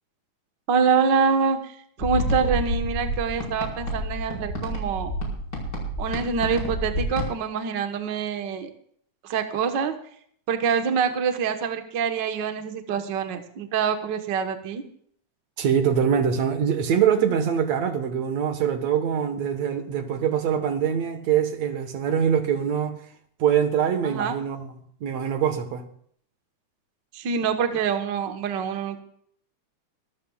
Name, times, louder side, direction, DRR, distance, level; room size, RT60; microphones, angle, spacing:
voice 1, 0.7-5.1 6.0-8.7 9.2-9.9 10.5-14.8 24.0-24.4 27.1-29.0, right 6 dB, 50° right, 1.5 m, -25 dB
sound 1, 2.0-7.3, equal, 30° left, 5.3 m, -29 dB
voice 2, 15.6-23.0 23.4-24.7 25.0-25.8, right 8 dB, 65° right, 2.5 m, -23 dB
24.0 x 13.5 x 2.4 m
omnidirectional pair, 3.4 m